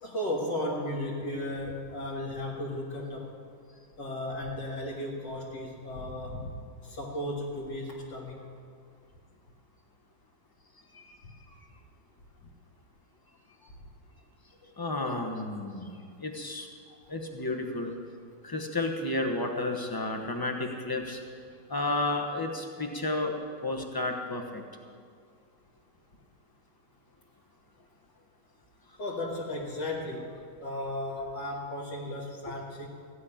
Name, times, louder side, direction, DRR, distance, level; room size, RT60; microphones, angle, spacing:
voice 1, 0.0-3.4 4.0-6.5 6.8-8.4 29.0-30.3 30.6-32.9, left 1 dB, 60° left, -2 dB, 2.1 m, -35 dB
voice 2, 14.8-16.7 17.1-17.9 18.4-21.2 21.7-24.6, left 2 dB, 25° left, 2 dB, 0.4 m, -32 dB
15.5 x 6.4 x 10.0 m, 2.2 s
omnidirectional pair, 2.3 m